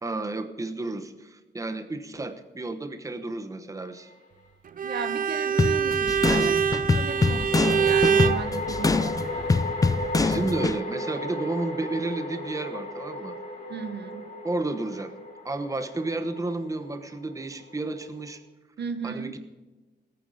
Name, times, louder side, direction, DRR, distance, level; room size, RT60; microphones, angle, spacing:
voice 1, 0.0-4.1 10.2-13.3 14.4-15.1 15.4-18.4 19.0-19.4, right 2 dB, 20° right, 9 dB, 1.0 m, -32 dB
sound 1, 4.0-4.1 7.0-18.4, left 1 dB, 45° left, 3.7 m, -36 dB
Bowed string instrument, 4.8-8.5, right 7 dB, 50° right, 0.6 m, -24 dB
voice 2, 4.8-9.5 13.7-14.3 18.8-19.4, right 5 dB, 70° right, 10 dB, 1.2 m, -36 dB
sound 2, 5.6-10.8, left 4 dB, 20° left, 0.3 m, -25 dB
18.5 x 9.3 x 4.9 m, 1.2 s
wide cardioid pair, 145°, 18 cm